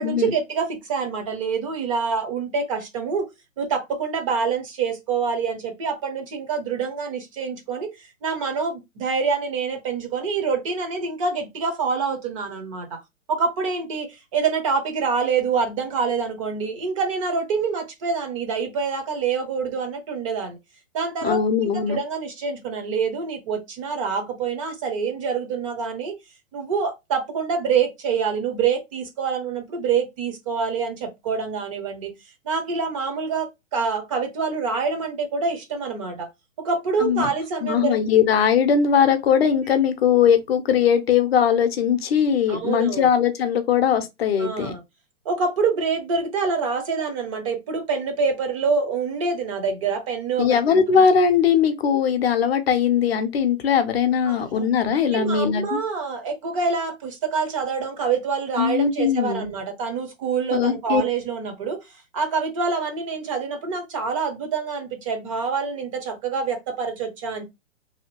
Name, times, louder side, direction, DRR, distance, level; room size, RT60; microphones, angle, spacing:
voice 1, 0.0-3.3 3.6-7.9 8.2-13.0 13.3-20.6 20.9-26.2 26.5-32.1 32.5-36.3 36.6-38.0 42.5-43.1 44.4-44.8 45.3-51.0 54.3-54.7 55.1-61.8 62.1-67.4, right 5 dB, 25° right, 0.6 m, -26 dB
voice 2, 21.2-22.0 37.0-37.3 37.6-44.7 50.4-55.8 58.6-59.5 60.5-61.0, left 7 dB, 50° left, 0.6 m, -20 dB
2.7 x 2.4 x 2.9 m
hypercardioid pair, 130°, 40 cm